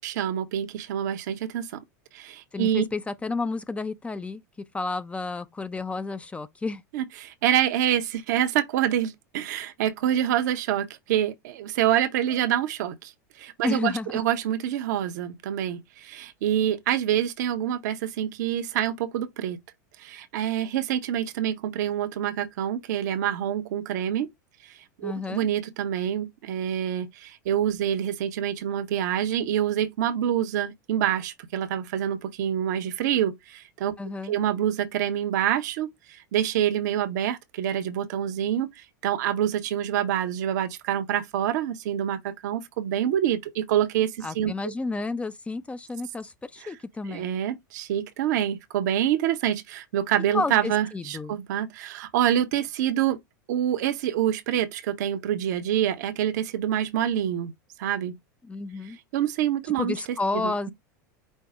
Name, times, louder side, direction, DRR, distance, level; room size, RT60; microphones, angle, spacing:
voice 1, 0.0-1.8 2.1-2.8 6.9-13.1 13.4-19.6 20.0-24.3 24.6-24.7 25.0-33.9 34.2-44.5 46.6-46.7 47.1-53.2 53.5-57.5 57.8-58.2 59.1-60.7, right 10 dB, 70° right, 0.8 m, -26 dB
voice 2, 2.5-4.4 4.7-6.8 13.6-14.2 25.0-25.5 34.0-34.4 44.2-47.3 50.3-51.4 58.4-59.0 59.8-60.7, left 3 dB, 10° left, 0.4 m, -31 dB
5.3 x 2.1 x 4.8 m
hypercardioid pair, 100°, 10 cm